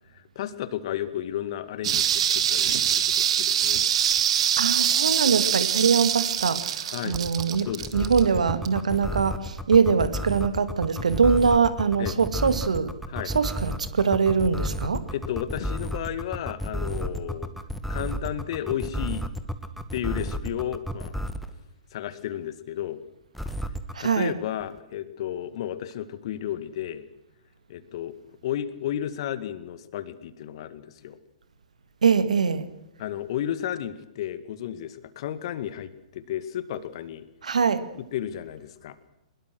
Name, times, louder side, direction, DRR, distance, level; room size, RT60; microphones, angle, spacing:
voice 1, 0.1-3.8 6.9-7.2 7.7-8.1 12.0-12.2 13.1-13.3 15.1-17.5 17.9-19.2 19.9-21.1 21.9-23.0 24.0-27.1 27.7-28.1 28.4-31.2 33.0-37.2 38.1-39.0, left 11 dB, 50° left, 2.1 m, -33 dB
sound 1, 1.8-8.9 9.2-9.3, right 9 dB, 55° right, 2.3 m, -24 dB
voice 2, 4.6-13.0 13.3-15.1 23.9-24.4 32.0-32.7 37.4-37.9, right 5 dB, 70° right, 2.0 m, -23 dB
sound 2, 7.1-21.5 23.3-23.9, equal, ahead, 1.8 m, -31 dB
23.0 x 22.0 x 6.2 m
figure-of-eight pair, 115°, 4 cm